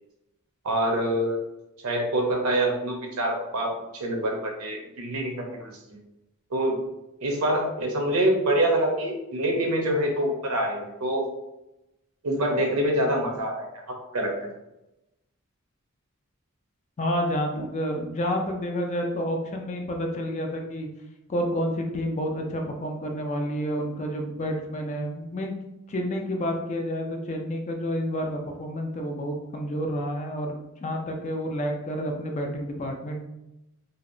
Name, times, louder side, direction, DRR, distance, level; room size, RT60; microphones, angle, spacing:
voice 1, 0.6-1.4 1.8-6.0 6.5-6.8 7.2-11.3 12.2-13.7 14.1-14.3, right 1 dB, 85° right, 1 dB, 0.6 m, -25 dB
voice 2, 17.0-20.9 21.3-25.5 25.9-33.2, equal, 35° left, 2 dB, 0.4 m, -29 dB
2.8 x 2.0 x 2.5 m, 0.91 s
head